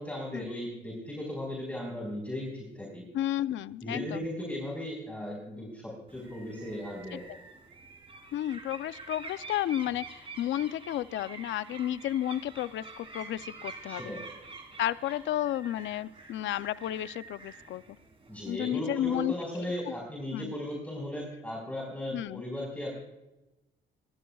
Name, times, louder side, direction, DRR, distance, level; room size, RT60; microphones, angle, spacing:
voice 1, 0.0-3.0 3.8-7.2 13.9-14.2 18.3-22.9, left 1 dB, 5° left, -2 dB, 4.7 m, -37 dB
voice 2, 3.1-4.2 8.3-14.0 14.8-17.8 18.5-19.3 20.3-20.5 22.1-22.4, left 12 dB, 70° left, 15 dB, 0.5 m, -32 dB
sound 1, 6.1-18.6, right 3 dB, 30° right, 3.6 m, -47 dB
26.5 x 12.5 x 2.3 m, 0.96 s
cardioid pair, 90°, 20 cm